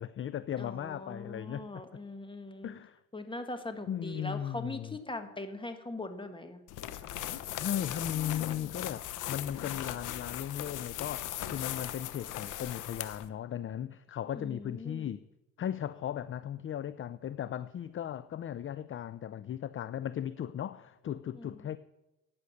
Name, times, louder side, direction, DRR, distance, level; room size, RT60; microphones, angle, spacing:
voice 1, 0.0-1.8 2.6-3.0 3.9-5.0 7.5-15.2 15.6-21.8, left 10 dB, 45° left, 0.5 m, -37 dB
voice 2, 0.6-2.7 3.1-6.6 14.3-15.1 21.4-21.6, left 2 dB, 15° left, 1.8 m, -41 dB
sound 1, 6.7-13.3, left 12 dB, 85° left, 1.0 m, -38 dB
15.0 x 9.6 x 6.5 m
cardioid pair, 90°, 30 cm